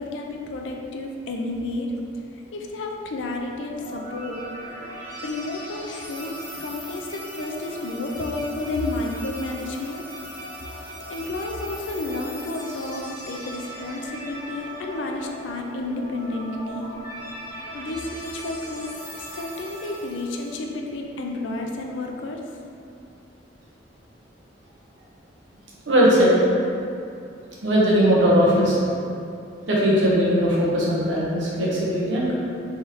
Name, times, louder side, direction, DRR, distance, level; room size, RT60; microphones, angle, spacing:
voice 1, 0.0-1.9 2.5-4.4 5.2-10.0 11.1-16.9 17.7-18.9 19.2-22.4, left 2 dB, 75° left, 2 dB, 0.4 m, -31 dB
sound 1, 3.7-20.6, equal, 25° left, 0.8 m, -39 dB
voice 2, 25.9-26.4 27.6-28.9 29.7-32.3, equal, 85° right, -6 dB, 0.9 m, -19 dB
3.5 x 3.3 x 2.9 m, 2.5 s
head